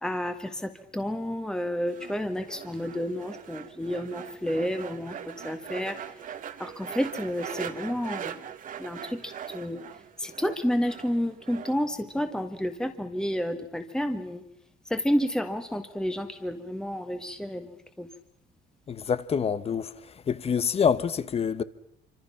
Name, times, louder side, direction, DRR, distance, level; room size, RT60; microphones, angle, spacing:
voice 1, 0.0-6.0 6.6-8.4 8.8-9.8 10.2-14.4 14.9-18.1, equal, 5° left, 1.7 m, -30 dB
sound 1, 1.9-11.7, right 8 dB, 50° right, 1.7 m, -41 dB
voice 2, 18.9-19.9 20.3-21.6, left 7 dB, 35° left, 1.2 m, -26 dB
26.5 x 26.0 x 5.9 m
cardioid pair, 110°, 17 cm